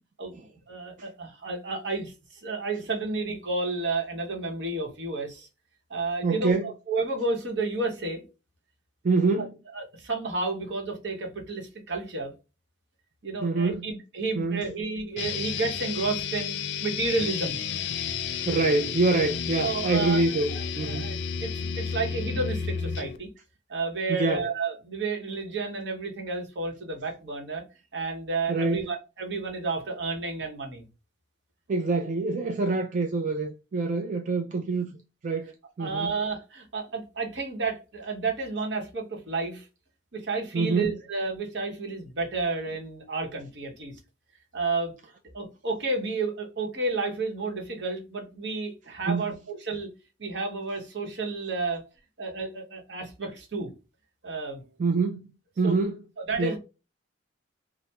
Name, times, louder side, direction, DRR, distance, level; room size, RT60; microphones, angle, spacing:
voice 1, 0.7-5.5 5.9-8.2 9.7-12.3 13.2-17.6 19.6-23.3 23.7-27.6 27.9-30.9 35.8-39.7 40.1-44.0 44.5-44.9 45.3-49.9 50.2-51.8 52.2-53.7 54.2-54.6 55.6-55.7 56.2-56.6, right 3 dB, 70° right, 0.9 m, -31 dB
voice 2, 6.2-6.7 9.0-9.5 13.4-13.9 14.4-14.6 18.5-21.1 24.1-24.4 28.5-28.8 31.7-35.0 35.2-35.5 35.8-36.1 40.5-41.0 49.1-49.3 54.8-55.2 55.6-56.0 56.4-56.6, right 3 dB, 45° right, 0.3 m, -25 dB
sound 1, 15.2-23.2, left 6 dB, 70° left, 0.4 m, -32 dB
3.3 x 2.0 x 2.7 m
head